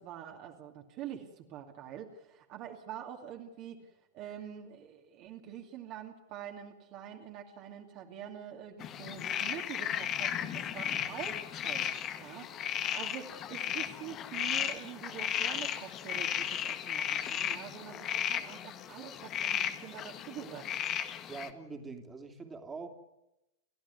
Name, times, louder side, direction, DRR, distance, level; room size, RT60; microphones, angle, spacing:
voice 1, 0.0-3.9 4.1-11.9 12.2-20.7, right 10 dB, 40° right, 1 dB, 2.6 m, -45 dB
sound 1, 8.8-21.5, left 10 dB, 30° left, 1.7 m, -35 dB
voice 2, 10.8-11.2 21.3-22.9, right 4 dB, 15° right, 4 dB, 3.0 m, -44 dB
29.5 x 14.5 x 9.5 m, 0.94 s
figure-of-eight pair, 90°, 0 cm